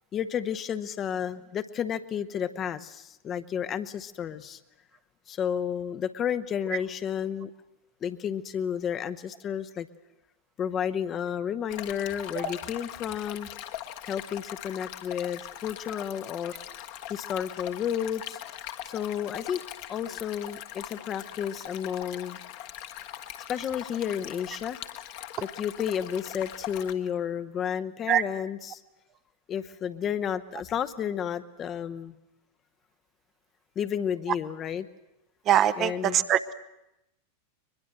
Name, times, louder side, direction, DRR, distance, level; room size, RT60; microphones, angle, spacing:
voice 1, 0.1-4.6 5.3-7.5 8.0-9.9 10.6-13.5 14.1-16.5 17.1-18.4 18.9-19.6 19.9-22.4 23.5-24.8 25.4-28.8 29.5-32.2 33.8-34.9 35.8-36.2, left 8 dB, 30° left, 11 dB, 0.9 m, -31 dB
Stream, 11.7-26.9, left 12 dB, 45° left, 1.4 m, -41 dB
voice 2, 35.5-36.5, right 11 dB, 30° right, 12 dB, 0.8 m, -23 dB
22.5 x 21.5 x 7.6 m, 0.90 s
figure-of-eight pair, 90°, 0 cm